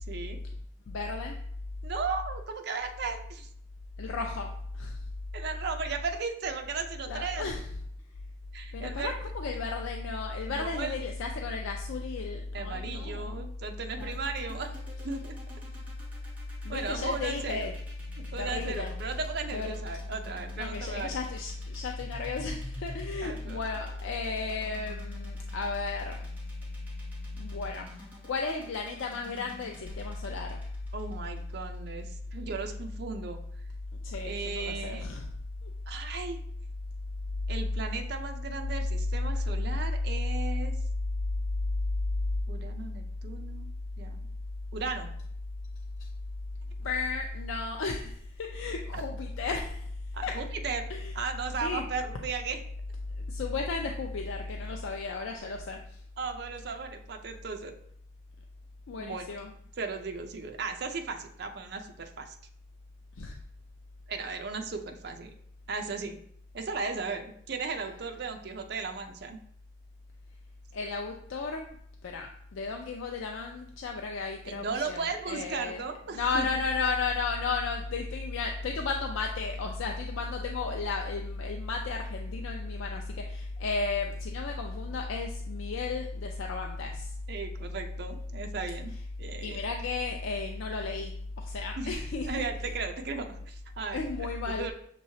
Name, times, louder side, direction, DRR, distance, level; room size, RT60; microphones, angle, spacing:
voice 1, 0.1-0.4 1.8-3.5 5.3-7.5 8.5-9.1 10.5-10.9 12.5-14.7 15.0-15.4 16.7-17.7 18.3-21.2 23.2-23.6 30.9-33.4 34.2-35.1 35.9-36.4 37.5-40.7 42.5-43.7 44.0-44.3 44.7-45.1 48.9-49.0 50.1-50.9 51.1-52.6 56.2-57.7 59.0-59.2 59.8-62.4 64.1-65.3 65.7-66.2 66.5-69.4 74.4-76.5 87.3-88.9 89.2-89.6 91.8-94.7, right 4 dB, 55° right, 5 dB, 0.5 m, -36 dB
voice 2, 0.9-1.4 4.0-5.0 7.1-7.6 8.7-13.5 14.0-14.1 16.6-17.7 18.4-18.9 19.5-19.7 20.6-26.2 27.4-27.8 28.2-30.6 34.0-35.3 35.6-35.7 46.8-49.9 50.2-50.4 50.9-51.1 51.6-51.8 53.3-55.8 58.9-59.5 63.2-63.4 70.7-71.7 72.0-75.8 76.1-87.1 89.4-92.3 93.9-94.7, left 4 dB, 85° left, 2 dB, 0.4 m, -33 dB
sound 1, 14.0-32.1, equal, 10° right, 0.9 m, -50 dB
6.3 x 3.0 x 2.7 m, 0.65 s
head